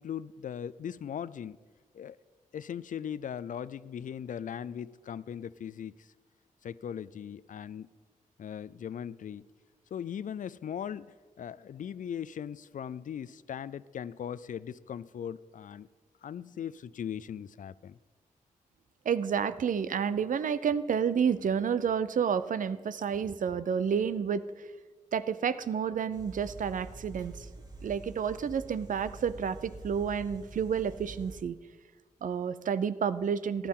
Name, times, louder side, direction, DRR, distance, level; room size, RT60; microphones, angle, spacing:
voice 1, 0.0-1.6 1.9-2.2 2.5-6.1 6.6-7.9 8.4-9.4 9.9-15.9 16.2-18.0, left 8 dB, 70° left, 18 dB, 0.4 m, -39 dB
voice 2, 19.0-24.7 25.1-27.5 27.8-31.6 32.2-33.7, right 7 dB, 70° right, 15 dB, 0.6 m, -30 dB
sound 1, 26.1-31.4, right 2 dB, 25° right, 1.7 m, -47 dB
14.5 x 12.0 x 3.7 m, 1.4 s
cardioid pair, 75°, 14 cm